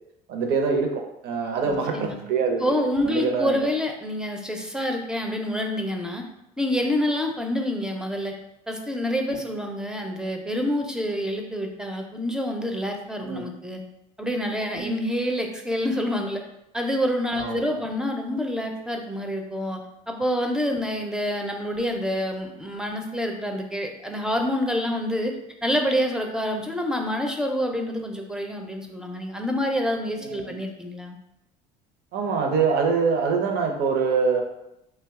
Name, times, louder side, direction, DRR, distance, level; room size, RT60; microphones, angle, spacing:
voice 1, 0.3-3.7 9.3-9.5 13.2-13.4 14.7-15.0 17.3-17.8 20.9-21.0 30.2-30.6 32.1-34.4, right 5 dB, 60° right, 3 dB, 0.7 m, -25 dB
voice 2, 1.6-2.2 2.6-6.2 6.6-8.3 8.7-13.8 14.2-16.4 16.7-19.8 20.1-25.3 25.6-31.2, equal, 5° right, 3 dB, 0.5 m, -27 dB
2.6 x 2.2 x 3.5 m, 0.86 s
supercardioid pair, 90°, 19 cm